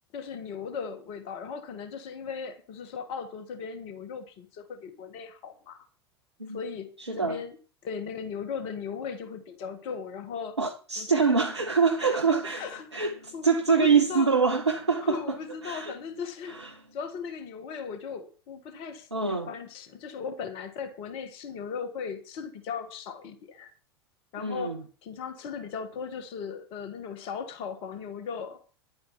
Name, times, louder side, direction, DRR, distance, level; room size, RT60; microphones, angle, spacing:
voice 1, 0.1-5.8 6.5-7.5 7.8-10.6 11.0-11.3 12.0-12.2 12.5-14.3 15.0-23.7 24.3-28.6, left 6 dB, 40° left, 1.6 m, -37 dB
voice 2, 7.0-7.4 10.6-12.6 12.9-15.4 15.6-15.9 16.5-16.7 19.1-19.5 24.4-24.8, right 5 dB, 85° right, 0.9 m, -25 dB
10.5 x 8.6 x 5.7 m
figure-of-eight pair, 85°, 14 cm